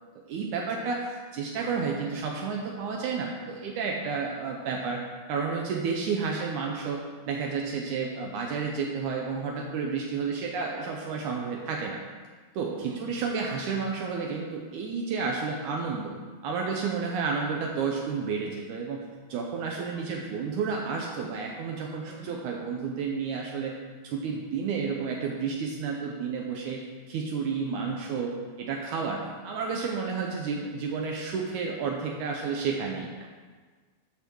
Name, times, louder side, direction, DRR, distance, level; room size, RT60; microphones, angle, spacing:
voice 1, 0.3-5.0 5.3-7.0 7.3-12.0 12.6-16.1 16.4-19.0 19.3-23.7 24.0-33.1, right 5 dB, 90° right, 0 dB, 1.7 m, -31 dB
voice 2, 19.9-20.6 22.0-22.3 30.1-30.3 32.9-33.3, right 3 dB, 75° right, 1 dB, 1.5 m, -49 dB
8.8 x 5.9 x 6.1 m, 1.5 s
omnidirectional pair, 4.6 m